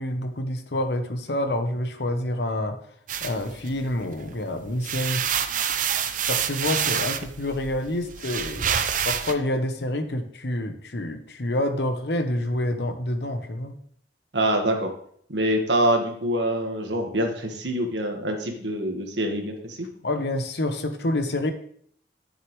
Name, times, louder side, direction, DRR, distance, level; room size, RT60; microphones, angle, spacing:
voice 1, 0.0-2.8 3.2-5.2 6.3-13.8 20.0-21.5, left 1 dB, 70° left, 7 dB, 1.0 m, -28 dB
sound 1, 3.1-4.3 4.7-9.3, right 8 dB, 45° right, 0.6 m, -27 dB
voice 2, 14.3-14.9 15.3-19.9, right 1 dB, 80° right, 3 dB, 1.6 m, -25 dB
11.0 x 6.6 x 3.2 m, 0.63 s
head